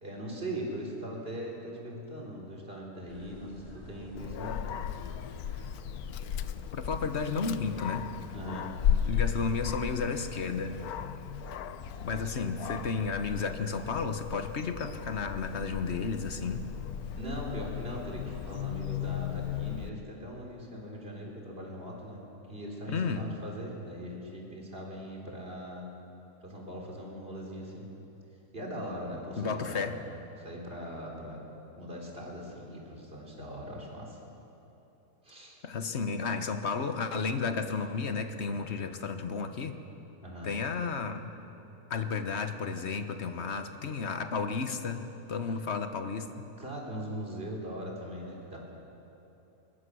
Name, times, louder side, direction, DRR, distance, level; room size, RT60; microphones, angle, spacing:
voice 1, 0.0-4.8 8.3-8.7 17.2-22.2 22.5-25.9 26.4-27.9 28.5-29.9 30.4-31.4 31.8-34.2 35.2-35.6 38.5-38.6 40.2-40.5 45.4-45.6 46.6-48.6, equal, 35° right, -2 dB, 3.8 m, -40 dB
sound 1, 3.1-19.5, equal, 15° left, 4.5 m, -50 dB
Dog, 4.2-19.9, left 9 dB, 75° left, 1.1 m, -36 dB
voice 2, 6.7-8.0 9.1-10.8 12.0-16.7 22.9-23.3 29.4-30.0 35.6-39.8 40.4-41.3 41.9-45.0 45.3-46.4, left 5 dB, 45° left, 8 dB, 1.3 m, -32 dB
21.5 x 20.0 x 6.3 m, 3.0 s
omnidirectional pair, 1.6 m